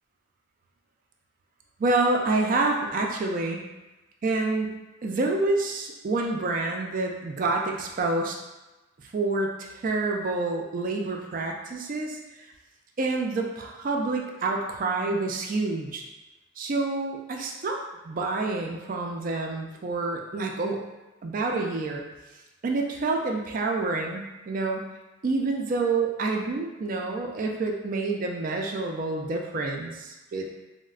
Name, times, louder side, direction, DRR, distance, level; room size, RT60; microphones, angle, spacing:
voice 1, 1.8-3.7 4.2-4.8 5.0-8.4 9.1-12.2 13.0-16.0 16.6-17.8 18.0-20.8 21.2-22.0 22.6-24.9 25.2-30.5, right 3 dB, 40° right, 1 dB, 0.3 m, -28 dB
4.0 x 2.1 x 2.3 m, 1.1 s
head